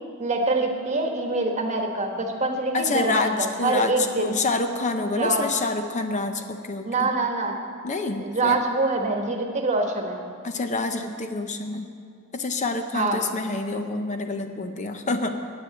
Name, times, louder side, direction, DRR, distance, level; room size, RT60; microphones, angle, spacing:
voice 1, 0.2-4.3 5.2-5.4 6.8-7.6 8.2-10.2 12.9-13.2, right 2 dB, 35° right, 3 dB, 1.3 m, -25 dB
voice 2, 2.7-7.1 7.8-8.6 10.4-11.9 12.3-15.4, left 3 dB, 35° left, 7 dB, 0.6 m, -27 dB
10.5 x 9.1 x 7.9 m, 2.3 s
head